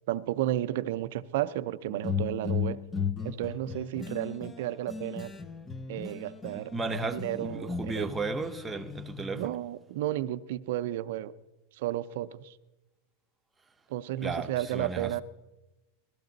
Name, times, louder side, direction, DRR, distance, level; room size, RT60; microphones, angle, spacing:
voice 1, 0.1-2.8 3.2-5.3 5.9-8.2 9.3-11.3 11.7-12.6 13.9-15.2, right 13 dB, 70° right, 0.5 m, -33 dB
sound 1, 1.9-6.6 6.9-9.5, left 6 dB, 15° left, 0.5 m, -36 dB
voice 2, 6.5-9.6 14.2-15.2, right 3 dB, 10° right, 0.8 m, -34 dB
17.0 x 13.0 x 3.9 m
supercardioid pair, 130°, 0 cm